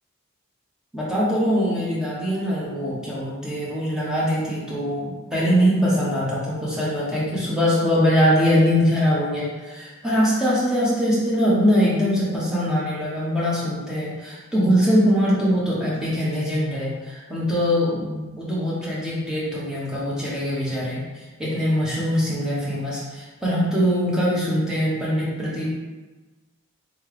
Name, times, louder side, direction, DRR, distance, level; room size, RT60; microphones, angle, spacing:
voice 1, 0.9-25.6, equal, 5° right, -8 dB, 1.0 m, -22 dB
3.7 x 3.1 x 3.4 m, 1.2 s
head